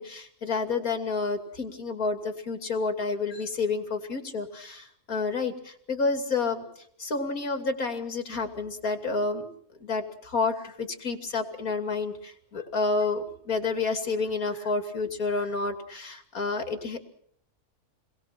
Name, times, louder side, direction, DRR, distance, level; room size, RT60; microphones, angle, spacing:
voice 1, 0.0-9.5 9.8-17.0, left 4 dB, 70° left, 6 dB, 3.2 m, -30 dB
29.0 x 21.5 x 6.0 m, 0.66 s
omnidirectional pair, 1.6 m